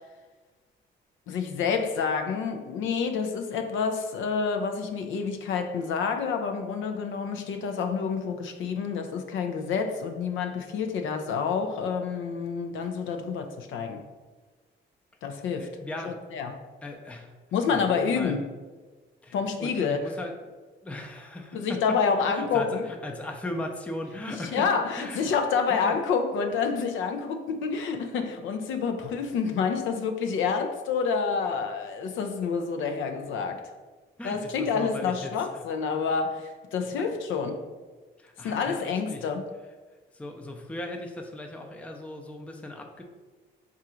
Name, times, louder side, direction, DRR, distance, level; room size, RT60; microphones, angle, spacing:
voice 1, 1.3-14.0 15.2-15.7 16.0-16.6 17.5-18.5 19.3-20.1 21.5-22.9 24.3-33.7 34.2-37.6 38.4-39.5, left 5 dB, 75° left, 6 dB, 0.5 m, -28 dB
voice 2, 15.6-16.2 16.8-17.3 17.7-18.4 19.2-20.3 20.8-21.8 22.3-24.7 25.0-25.3 25.7-26.0 34.2-35.3 36.9-37.1 38.2-39.3 40.1-43.1, left 1 dB, 5° left, 2 dB, 0.4 m, -38 dB
3.7 x 2.4 x 4.3 m, 1.3 s
cardioid pair, 90°, 20 cm